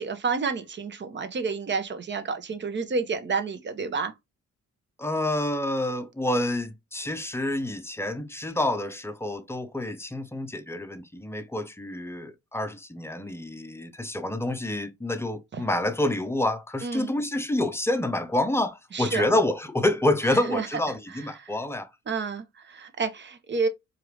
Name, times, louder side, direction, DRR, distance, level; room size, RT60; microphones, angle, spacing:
voice 1, 0.0-4.1 15.5-15.6 16.8-17.1 18.9-19.3 20.5-20.7 21.1-21.5 22.1-23.7, right 4 dB, 40° right, 0.8 m, -30 dB
voice 2, 5.0-21.9, left 1 dB, 10° left, 0.7 m, -28 dB
4.6 x 2.5 x 3.1 m
cardioid pair, 90°, 30 cm